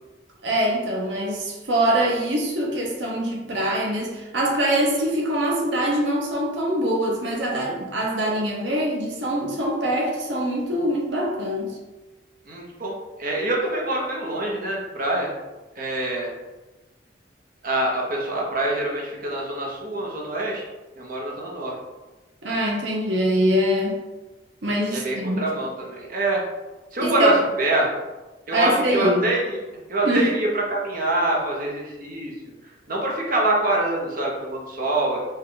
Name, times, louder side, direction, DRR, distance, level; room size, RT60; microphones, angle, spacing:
voice 1, 0.4-11.8 22.4-24.0 24.6-25.4 27.0-27.4 28.5-29.2 30.0-30.3, equal, 80° right, -2 dB, 0.9 m, -23 dB
voice 2, 12.5-12.9 13.2-15.3 15.8-16.3 17.6-20.6 21.0-21.7 24.9-26.4 26.9-27.3 27.6-27.9 28.5-29.6 29.9-32.3 32.9-35.2, right 2 dB, 50° right, -2 dB, 0.9 m, -25 dB
5.3 x 2.4 x 3.8 m, 1.1 s
head